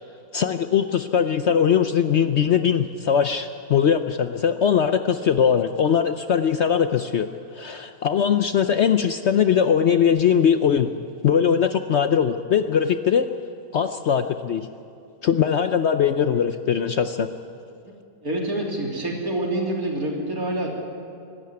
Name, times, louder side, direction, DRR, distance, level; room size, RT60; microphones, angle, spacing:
voice 1, 0.3-7.3 7.5-10.9 11.2-13.3 13.7-14.7 15.2-17.3, left 8 dB, 60° left, 9 dB, 0.8 m, -20 dB
voice 2, 18.2-20.7, right 1 dB, 70° right, 0 dB, 3.7 m, -26 dB
24.5 x 12.5 x 9.5 m, 2.5 s
omnidirectional pair, 1.6 m